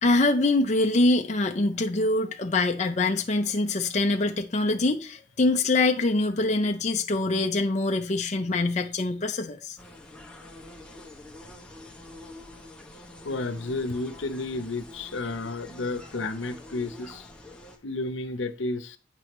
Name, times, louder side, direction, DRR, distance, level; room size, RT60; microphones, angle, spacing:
voice 1, 0.0-9.8, left 2 dB, 40° left, 0.6 m, -24 dB
sound 1, 9.8-17.8, left 1 dB, 5° left, 0.8 m, -46 dB
voice 2, 13.2-17.3 17.8-19.0, left 2 dB, 85° left, 0.8 m, -32 dB
8.8 x 6.2 x 3.1 m
head